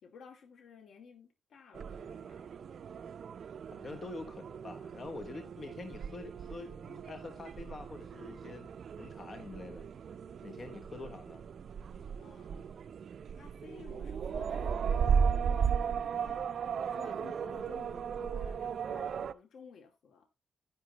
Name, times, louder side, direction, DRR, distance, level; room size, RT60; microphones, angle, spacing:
voice 1, 0.0-2.5 12.2-12.8 13.4-20.3, left 6 dB, 70° left, 2.3 m, -54 dB
sound 1, 1.7-19.3, right 6 dB, 55° right, 0.5 m, -36 dB
voice 2, 3.7-8.7 9.0-9.9 10.4-11.4, left 3 dB, 35° left, 1.1 m, -46 dB
10.0 x 10.0 x 2.9 m
wide cardioid pair, 135°, 0 cm